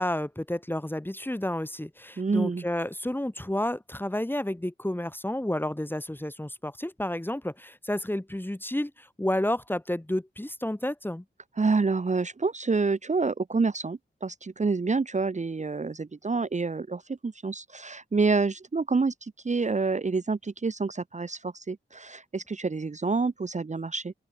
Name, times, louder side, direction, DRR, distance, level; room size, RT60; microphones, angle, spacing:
voice 1, 0.0-11.2, left 1 dB, 10° left, 1.4 m, -31 dB
voice 2, 2.2-2.6 11.6-24.1, right 4 dB, 35° right, 0.8 m, -28 dB
open air
wide cardioid pair, 95°, 20 cm